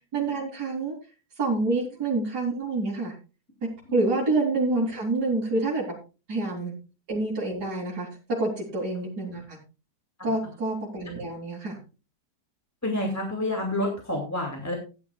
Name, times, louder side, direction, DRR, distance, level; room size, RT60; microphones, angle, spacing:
voice 1, 0.1-0.9 1.4-3.2 3.9-5.9 6.3-6.7 7.1-8.1 8.4-9.6 10.2-11.8, right 2 dB, 65° right, -7 dB, 3.7 m, -27 dB
voice 2, 12.8-14.7, left 1 dB, 10° left, 0 dB, 2.4 m, -28 dB
16.5 x 10.0 x 2.3 m, 0.32 s
omnidirectional pair, 1.9 m